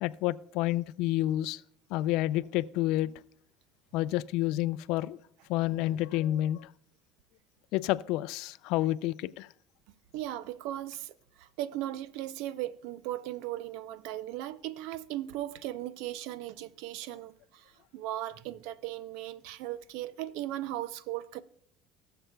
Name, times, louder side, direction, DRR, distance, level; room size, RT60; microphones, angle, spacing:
voice 1, 0.0-1.6 1.9-3.1 3.9-5.2 5.5-6.7 7.7-9.5, left 15 dB, 70° left, 0.3 m, -29 dB
voice 2, 10.1-21.4, right 14 dB, 75° right, 0.5 m, -37 dB
19.0 x 6.7 x 2.3 m
supercardioid pair, 115°, 0 cm